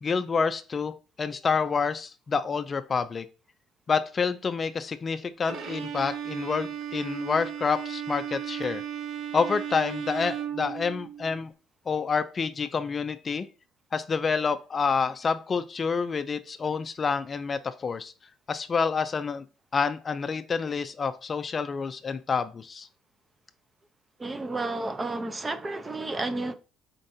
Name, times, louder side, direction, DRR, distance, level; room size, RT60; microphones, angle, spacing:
voice 1, 0.0-3.3 3.9-8.8 9.3-11.5 11.9-13.5 13.9-18.1 18.5-19.4 19.7-22.9, left 5 dB, 35° left, 0.4 m, -28 dB
Bowed string instrument, 5.5-11.4, right 9 dB, 65° right, 0.8 m, -35 dB
voice 2, 24.2-26.5, right 2 dB, 20° right, 0.5 m, -31 dB
4.5 x 3.9 x 2.6 m
cardioid pair, 105°, 0 cm